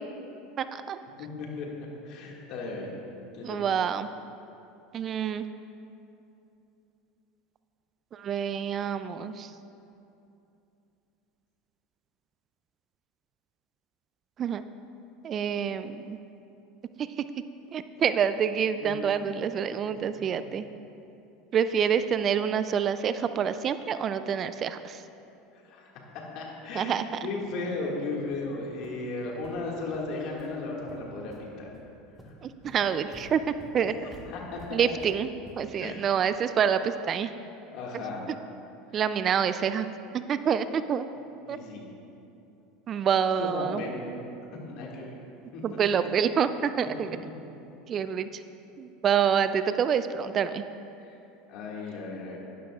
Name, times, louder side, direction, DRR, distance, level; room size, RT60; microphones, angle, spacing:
voice 1, 0.6-1.0 3.4-4.1 4.9-5.5 8.1-9.5 14.4-14.6 15.2-16.2 17.0-17.2 17.7-20.7 21.5-25.0 26.7-27.1 32.4-33.9 34.7-37.3 38.3-38.4 38.9-39.9 40.1-41.0 41.5-41.6 42.9-43.8 45.6-47.1 47.9-48.4 48.8-50.6, right 7 dB, 40° right, 12 dB, 0.3 m, -27 dB
voice 2, 1.2-1.7 2.1-2.9 3.3-3.7 18.8-18.9 25.5-25.9 26.3-31.7 32.2-32.3 34.3-34.8 35.8-36.0 37.7-38.2 41.5-41.8 43.4-44.1 44.7-45.1 45.5-45.8 51.1-51.2 51.5-52.4, left 3 dB, 60° left, -2 dB, 1.9 m, -35 dB
sound 1, 27.8-27.9 28.3-28.5 28.8-28.9 29.4-29.5 29.9-30.0 30.4-30.5 30.9-31.4 31.7-31.8 32.2-35.8, equal, ahead, 1.6 m, -51 dB
11.5 x 10.5 x 2.4 m, 2.8 s
supercardioid pair, 100°, 0 cm